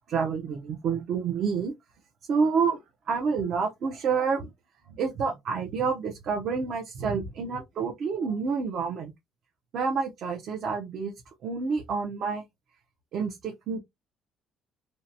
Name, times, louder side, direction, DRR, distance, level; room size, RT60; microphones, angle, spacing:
voice 1, 0.1-1.7 2.3-2.8 3.1-4.5 4.9-9.1 9.7-11.1 11.4-12.4 13.1-13.8, right 5 dB, 60° right, 0.6 m, -28 dB
2.7 x 2.2 x 2.7 m
cardioid pair, 100°, 0 cm